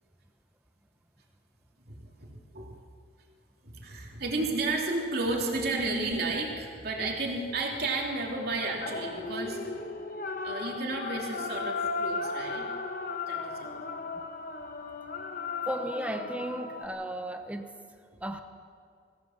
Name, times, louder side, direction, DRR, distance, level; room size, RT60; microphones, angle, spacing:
voice 1, 1.9-2.8 3.6-9.8 10.4-12.7 13.3-14.0, right 2 dB, 55° right, -1 dB, 3.0 m, -32 dB
sound 1, 8.8-16.9, left 4 dB, 45° left, 1.3 m, -35 dB
voice 2, 15.7-17.7 18.2-18.4, right 1 dB, 5° right, 6 dB, 1.0 m, -34 dB
22.5 x 16.0 x 7.4 m, 2.2 s
head